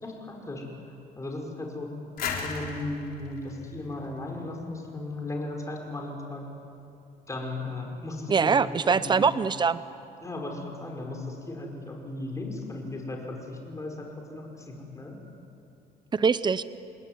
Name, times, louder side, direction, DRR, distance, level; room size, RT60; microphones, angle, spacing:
voice 1, 0.0-0.6 1.2-1.9 2.3-6.4 7.3-9.3 10.2-15.1, left 2 dB, 20° left, 1 dB, 5.8 m, -36 dB
sound 1, 2.2-4.9, left 5 dB, 60° left, 4.1 m, -36 dB
voice 2, 8.3-9.8 16.1-16.6, right 5 dB, 25° right, 15 dB, 0.9 m, -23 dB
28.5 x 20.5 x 9.6 m, 2.7 s
cardioid pair, 110°, 17 cm